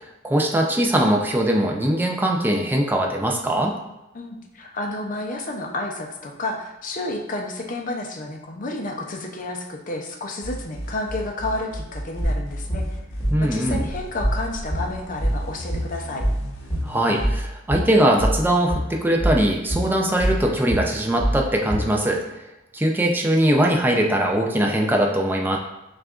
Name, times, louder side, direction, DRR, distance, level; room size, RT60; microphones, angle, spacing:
voice 1, 0.0-3.7 13.3-13.8 16.8-22.2 22.7-25.6, right 1 dB, 10° right, 0 dB, 0.4 m, -21 dB
voice 2, 4.1-13.0 13.4-16.2, left 2 dB, 40° left, 2 dB, 0.5 m, -31 dB
sound 1, 10.4-17.3, equal, 80° left, 0.8 m, -35 dB
sound 2, 12.2-22.0, equal, 10° left, 1.3 m, -25 dB
6.2 x 2.4 x 2.4 m, 0.96 s
head